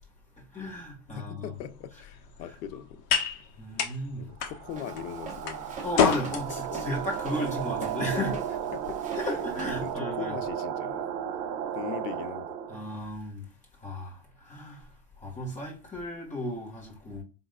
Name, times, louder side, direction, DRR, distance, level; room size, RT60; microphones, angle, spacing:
voice 1, 0.4-1.5 3.6-4.3 5.8-8.3 9.1-10.3 12.7-13.5 13.8-14.9 15.2-17.2, left 1 dB, 15° left, 1.7 m, -34 dB
voice 2, 1.2-3.1 4.2-5.8 6.5-7.0 8.1-8.2 8.7-9.0 9.2-9.4 9.8-11.1 11.7-12.6, left 9 dB, 80° left, 0.8 m, -40 dB
sound 1, 1.5-9.9, left 7 dB, 45° left, 1.2 m, -33 dB
sound 2, 4.5-12.9, right 9 dB, 70° right, 1.1 m, -34 dB
Walk footsteps, 4.7-9.9, right 3 dB, 15° right, 0.9 m, -45 dB
5.0 x 3.8 x 2.3 m
supercardioid pair, 155°, 49 cm